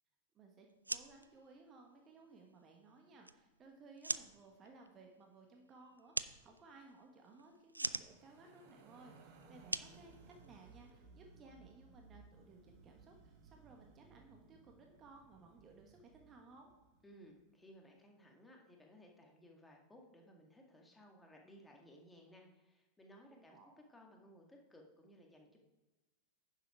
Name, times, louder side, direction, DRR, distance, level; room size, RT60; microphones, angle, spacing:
voice 1, 0.3-16.7 23.3-23.7, right 3 dB, 25° right, 2 dB, 1.6 m, -60 dB
sound 1, 0.7-10.9, right 2 dB, 85° right, 0.3 m, -46 dB
sound 2, 8.0-17.2, right 4 dB, 45° right, 1.5 m, -62 dB
voice 2, 17.0-23.6 23.9-25.6, equal, 10° left, 0 dB, 1.9 m, -60 dB
10.0 x 7.0 x 4.8 m, 1.1 s
figure-of-eight pair, 90°, 0 cm